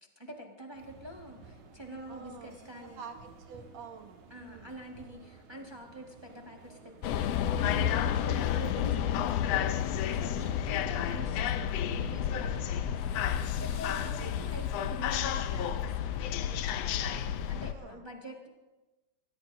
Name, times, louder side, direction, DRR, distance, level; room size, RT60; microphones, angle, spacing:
voice 1, 0.2-3.0 4.3-18.5, equal, 15° right, 0 dB, 0.8 m, -46 dB
sound 1, 0.7-17.8, right 4 dB, 85° right, 3.1 m, -53 dB
voice 2, 2.1-4.8 8.2-8.7 10.4-10.7 14.0-14.2 17.7-18.0, right 6 dB, 65° right, 5 dB, 2.3 m, -49 dB
sound 2, 7.0-17.7, left 10 dB, 75° left, 1.5 m, -31 dB
23.0 x 19.0 x 2.7 m, 1.1 s
omnidirectional pair, 3.4 m